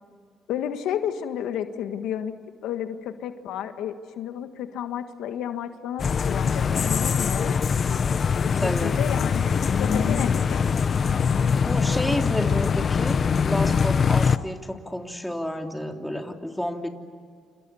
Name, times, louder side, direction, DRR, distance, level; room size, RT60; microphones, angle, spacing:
voice 1, 0.5-2.4 2.6-7.5 8.4-10.6, left 9 dB, 90° left, 8 dB, 1.6 m, -31 dB
sound 1, 6.0-14.4, left 6 dB, 45° left, 1.0 m, -23 dB
voice 2, 8.6-9.0 11.6-16.9, left 1 dB, 5° left, 3 dB, 3.1 m, -30 dB
29.5 x 28.0 x 7.1 m, 2.1 s
cardioid pair, 90°, 0 cm